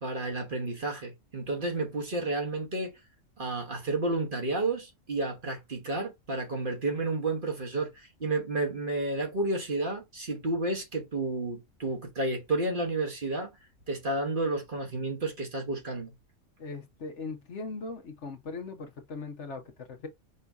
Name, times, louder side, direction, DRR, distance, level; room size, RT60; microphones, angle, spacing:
voice 1, 0.0-3.0 3.4-13.5 13.9-16.1, right 2 dB, 40° right, 1.2 m, -31 dB
voice 2, 16.6-20.1, left 4 dB, 60° left, 1.2 m, -39 dB
5.4 x 2.8 x 3.5 m
omnidirectional pair, 1.4 m